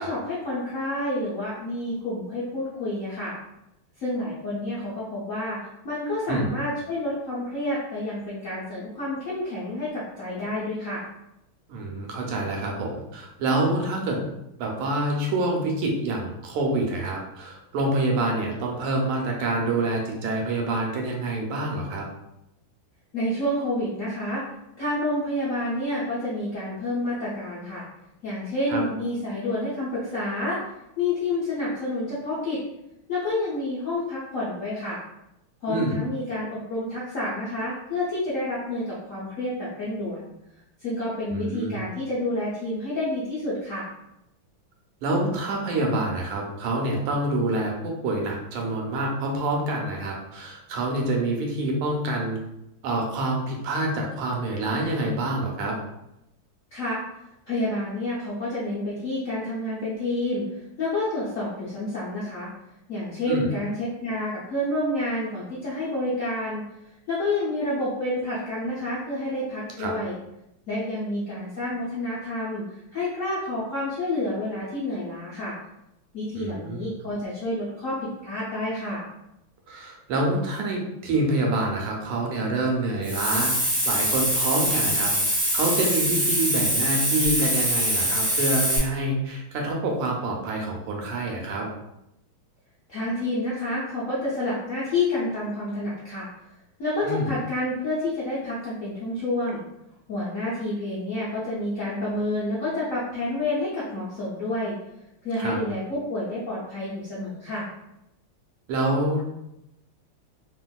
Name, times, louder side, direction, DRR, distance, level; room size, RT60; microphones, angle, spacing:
voice 1, 0.0-3.3 4.0-11.0 23.1-24.4 24.8-27.8 28.2-30.6 31.0-32.6 33.1-35.0 35.6-40.3 40.8-43.9 56.7-57.0 57.5-60.4 60.8-62.5 62.9-66.6 67.1-70.2 70.7-72.6 72.9-75.5 76.1-79.0 92.9-96.3 96.8-99.6 100.1-104.7 105.2-107.7, left 1 dB, 75° left, -9 dB, 0.7 m, -29 dB
voice 2, 11.7-14.3 14.6-22.0 28.7-28.8 35.7-36.0 41.3-41.8 45.0-52.4 52.8-55.7 63.3-63.5 69.8-69.9 76.4-76.9 79.7-83.5 83.9-85.1 85.5-91.7 97.0-97.3 105.4-105.6 108.7-109.3, right 2 dB, 85° right, 0 dB, 1.6 m, -27 dB
Hiss, 83.0-88.8, equal, 50° right, 0.5 m, -24 dB
3.4 x 2.5 x 2.2 m, 0.85 s
omnidirectional pair, 2.4 m